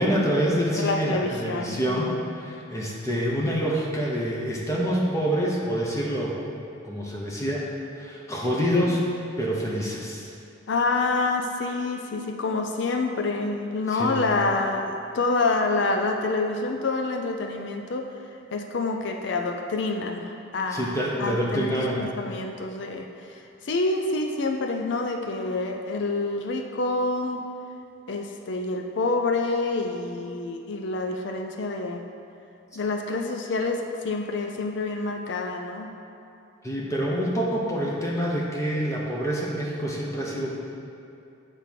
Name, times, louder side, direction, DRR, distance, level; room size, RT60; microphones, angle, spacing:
voice 1, 0.0-6.4 6.8-7.6 7.9-9.0 9.4-10.3 13.9-14.2 20.7-22.1 36.6-40.5, equal, 15° left, -4 dB, 0.8 m, -26 dB
voice 2, 0.8-2.2 10.7-18.1 18.5-21.7 22.0-23.4 23.7-27.5 28.1-32.0 32.8-35.9, left 3 dB, 60° left, 4 dB, 0.5 m, -27 dB
8.1 x 3.5 x 5.8 m, 2.6 s
head